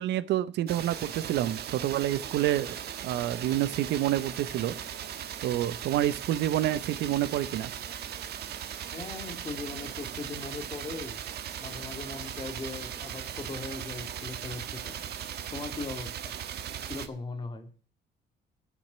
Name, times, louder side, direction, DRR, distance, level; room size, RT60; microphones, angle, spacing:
voice 1, 0.0-2.8 3.0-4.8 5.4-7.7, right 12 dB, 85° right, 17 dB, 0.8 m, -28 dB
sound 1, 0.7-17.1, right 9 dB, 70° right, 1.4 m, -38 dB
voice 2, 8.9-11.2 11.6-15.0 15.5-16.4 16.9-17.7, left 3 dB, 25° left, 6 dB, 2.2 m, -39 dB
13.5 x 6.5 x 6.7 m, 0.38 s
cardioid pair, 140°, 18 cm